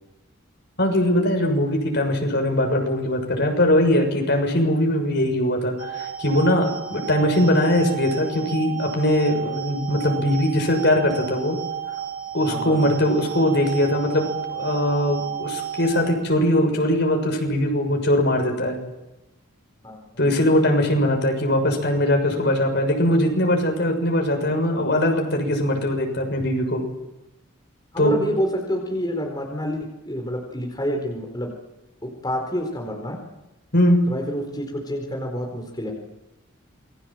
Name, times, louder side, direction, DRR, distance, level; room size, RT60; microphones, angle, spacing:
voice 1, 0.8-11.6 12.3-18.8 20.2-26.8 28.0-28.1 33.7-34.1, left 1 dB, 55° left, 3 dB, 6.7 m, -21 dB
sound 1, 5.8-16.1, right 9 dB, 75° right, 5.6 m, -32 dB
voice 2, 12.5-12.9 19.8-20.0 27.9-31.5 32.0-33.2 34.1-35.9, equal, 20° left, 1 dB, 4.4 m, -28 dB
28.5 x 22.0 x 7.7 m, 0.99 s
head